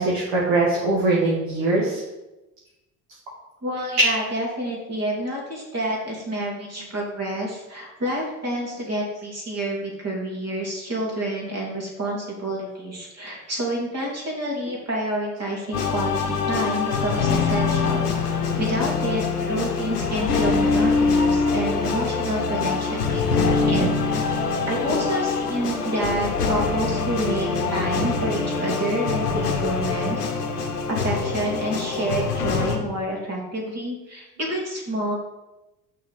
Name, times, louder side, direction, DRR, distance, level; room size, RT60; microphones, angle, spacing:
voice 1, 0.0-2.0 4.0-4.1, right 2 dB, 60° right, -5 dB, 2.2 m, -21 dB
voice 2, 3.6-24.2 24.7-30.3 30.9-35.1, right 1 dB, 35° right, -2 dB, 3.1 m, -28 dB
sound 1, 15.7-32.8, left 4 dB, 85° left, 0.9 m, -24 dB
6.1 x 4.9 x 6.6 m, 1.0 s
figure-of-eight pair, 60°, 45 cm